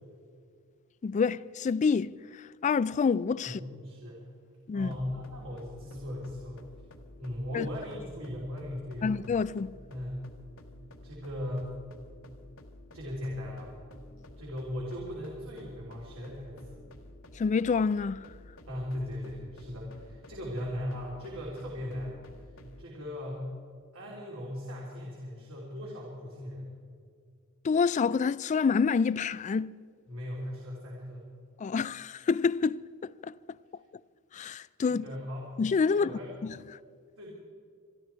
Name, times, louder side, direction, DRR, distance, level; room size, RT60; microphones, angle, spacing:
voice 1, 1.0-2.1 2.6-3.6 4.7-4.9 7.5-7.7 9.0-9.7 17.4-18.3 27.6-29.7 31.6-33.3 34.3-35.0 35.6-36.1 36.4-36.5, left 5 dB, 35° left, 0.3 m, -27 dB
voice 2, 3.4-4.3 4.7-6.6 7.2-9.1 9.9-10.2 11.0-11.7 12.9-13.7 14.4-16.8 18.7-22.2 22.8-23.5 23.9-26.7 30.1-31.3 34.9-35.5 35.9-36.3 37.2-37.3, left 1 dB, 70° right, 3.2 m, -38 dB
sound 1, 4.8-22.8, left 1 dB, 70° left, 1.3 m, -51 dB
26.0 x 12.0 x 4.5 m
head